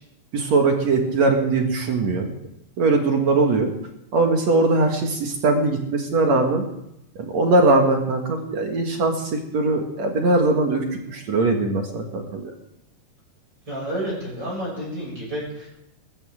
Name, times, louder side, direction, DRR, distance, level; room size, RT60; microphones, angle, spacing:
voice 1, 0.3-2.3 2.8-3.7 4.1-6.6 7.2-12.5, right 3 dB, 50° right, 2 dB, 2.4 m, -21 dB
voice 2, 13.7-15.7, right 1 dB, 25° right, -5 dB, 7.2 m, -30 dB
20.5 x 15.0 x 3.7 m, 0.83 s
omnidirectional pair, 4.8 m